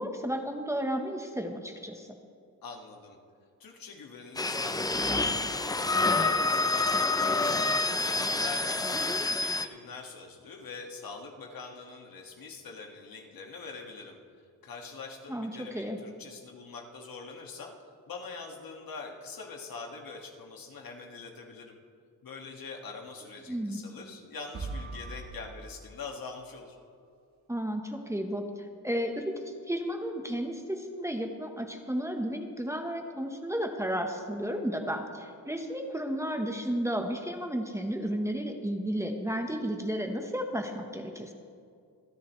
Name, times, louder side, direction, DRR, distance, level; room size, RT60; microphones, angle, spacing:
voice 1, 0.0-2.1 15.3-16.0 23.5-23.8 27.5-28.5 28.8-41.3, equal, 5° right, 3 dB, 1.1 m, -33 dB
voice 2, 2.6-3.2 3.6-14.2 14.6-17.7 18.1-21.7 22.2-26.8, left 4 dB, 60° left, 1 dB, 2.0 m, -44 dB
sound 1, 4.4-9.7, left 3 dB, 10° left, 0.5 m, -27 dB
sound 2, 24.5-26.6, right 3 dB, 45° right, 4.1 m, -41 dB
27.0 x 10.0 x 3.2 m, 2.3 s
cardioid pair, 95°, 39 cm